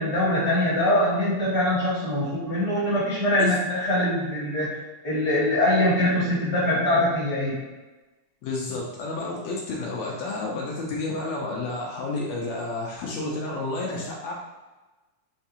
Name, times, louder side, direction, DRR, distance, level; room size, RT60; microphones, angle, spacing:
voice 1, 0.0-4.8 5.0-7.6, left 1 dB, 50° left, -10 dB, 1.2 m, -23 dB
voice 2, 8.4-14.3, left 2 dB, 80° left, -2 dB, 1.6 m, -30 dB
5.5 x 2.3 x 2.8 m, 1.2 s
omnidirectional pair, 3.5 m